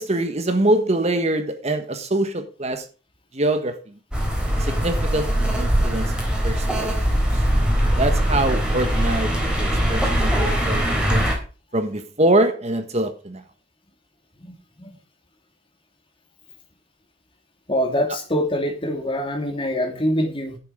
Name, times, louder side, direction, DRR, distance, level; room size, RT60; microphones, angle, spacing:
voice 1, 0.0-2.8 3.3-3.9 4.6-6.1 6.4-6.9 7.3-7.4 7.9-9.3 9.6-11.2 11.7-13.4, right 1 dB, 35° right, 1.3 m, -24 dB
sound 1, 4.1-11.3, equal, 5° right, 3.8 m, -21 dB
voice 2, 17.7-20.6, equal, 30° left, 2.9 m, -24 dB
11.5 x 7.7 x 5.0 m
head